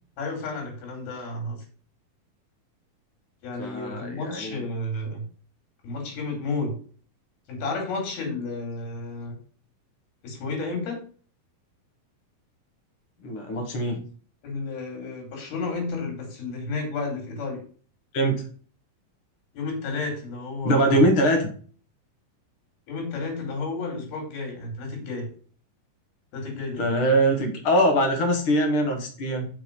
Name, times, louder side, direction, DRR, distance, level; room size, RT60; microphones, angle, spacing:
voice 1, 0.2-1.6 3.4-5.2 5.8-6.8 7.5-9.3 10.2-11.0 14.4-17.6 19.5-21.1 22.9-25.3 26.3-26.9, left 3 dB, 80° left, 1 dB, 4.6 m, -32 dB
voice 2, 3.6-4.6 13.2-14.0 18.1-18.5 20.6-21.5 26.8-29.5, right 1 dB, 50° left, 4 dB, 1.9 m, -22 dB
6.9 x 5.6 x 5.2 m, 0.42 s
omnidirectional pair, 4.3 m